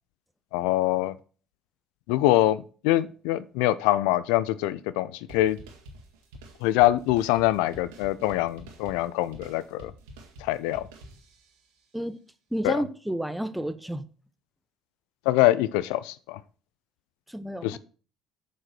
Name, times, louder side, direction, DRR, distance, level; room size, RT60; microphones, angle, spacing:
voice 1, 0.5-1.1 2.1-5.6 6.6-9.9 10.4-10.9 12.6-12.8 15.3-16.4 17.6-17.8, left 15 dB, 75° left, 0.4 m, -24 dB
sound 1, 5.3-11.7, right 1 dB, 80° right, 2.0 m, -48 dB
voice 2, 12.5-14.1 17.3-17.8, right 1 dB, 5° right, 0.9 m, -31 dB
7.5 x 5.4 x 5.9 m
hypercardioid pair, 60°, 0 cm